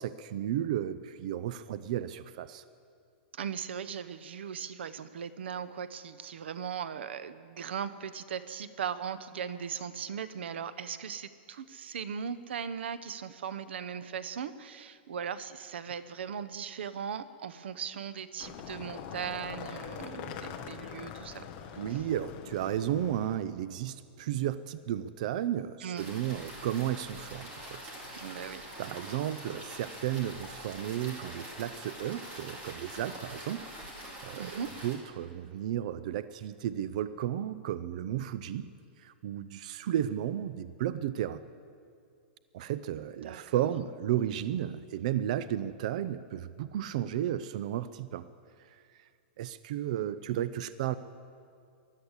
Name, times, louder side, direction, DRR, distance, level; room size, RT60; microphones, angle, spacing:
voice 1, 0.0-2.6 21.8-27.8 28.1-28.3 28.8-33.7 34.0-38.7 39.0-41.4 42.5-48.3 48.7-48.8 49.4-51.0, right 11 dB, 40° right, 15 dB, 0.4 m, -33 dB
voice 2, 3.3-21.4 21.7-22.1 25.8-26.1 28.1-28.7 34.4-34.7 43.2-43.7, right 7 dB, 85° right, 14 dB, 0.8 m, -38 dB
sound 1, 18.4-23.4, left 8 dB, 25° left, 0.9 m, -43 dB
sound 2, 26.0-35.0, right 1 dB, 20° right, 2.5 m, -45 dB
15.5 x 11.5 x 8.1 m, 2.3 s
supercardioid pair, 175°, 6 cm